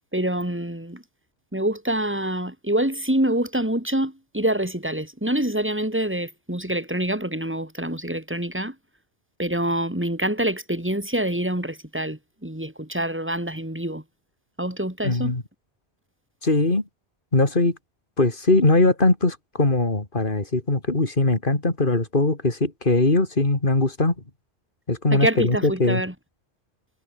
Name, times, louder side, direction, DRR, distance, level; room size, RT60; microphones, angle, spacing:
voice 1, 0.1-1.0 1.5-8.7 9.4-14.0 14.6-15.3 25.1-26.1, right 1 dB, 10° right, 4.1 m, -26 dB
voice 2, 15.0-15.4 16.4-16.8 17.3-17.8 18.2-24.2 24.9-26.0, left 2 dB, 50° left, 3.6 m, -21 dB
omnidirectional pair, 1.1 m